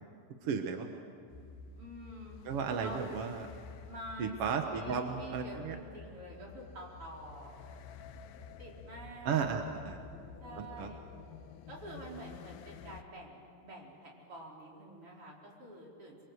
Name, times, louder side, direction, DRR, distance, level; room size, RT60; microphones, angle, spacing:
voice 1, 0.4-0.9 2.4-3.5 4.2-5.7 9.2-10.0 10.6-10.9, right 6 dB, 60° right, 4 dB, 1.7 m, -34 dB
sound 1, 1.3-13.0, left 5 dB, 90° left, 2.7 m, -51 dB
voice 2, 1.7-2.4 2.8-3.0 3.8-7.6 8.6-9.4 10.4-11.1 11.7-16.3, equal, 40° right, -3 dB, 5.3 m, -48 dB
28.0 x 23.5 x 8.0 m, 2.4 s
omnidirectional pair, 4.0 m